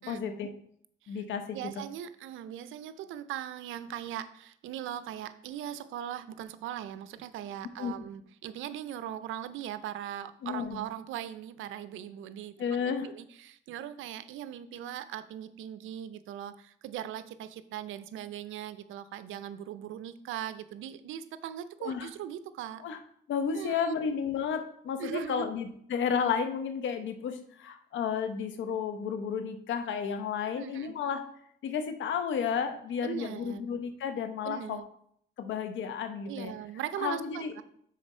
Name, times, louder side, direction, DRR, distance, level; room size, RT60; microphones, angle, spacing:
voice 1, 0.1-0.5 1.1-1.6 7.8-7.9 10.4-10.8 12.6-13.1 21.8-22.1 22.8-23.0 23.3-31.2 31.6-34.8 35.4-36.5 37.0-37.5, left 7 dB, 70° left, 8 dB, 0.9 m, -32 dB
voice 2, 1.5-22.8 23.5-24.0 25.0-25.5 30.6-30.9 33.0-33.6 34.4-34.9 36.3-37.6, right 10 dB, 80° right, 13 dB, 0.5 m, -39 dB
6.5 x 4.4 x 5.4 m, 0.66 s
cardioid pair, 90°, 20 cm